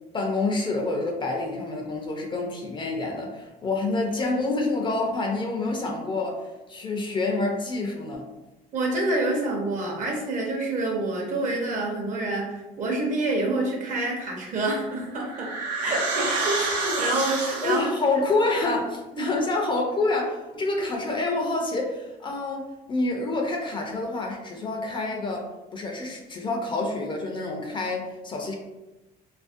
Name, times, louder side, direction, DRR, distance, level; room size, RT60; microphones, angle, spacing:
voice 1, 0.1-8.3 17.6-28.5, left 2 dB, 30° left, 1 dB, 0.5 m, -27 dB
voice 2, 8.7-15.5 15.8-17.9 19.1-19.4, right 2 dB, 50° right, -1 dB, 0.8 m, -27 dB
sound 1, 14.8-18.1, right 3 dB, 80° right, 0.7 m, -29 dB
2.5 x 2.0 x 2.5 m, 1.1 s
supercardioid pair, 95°, 17 cm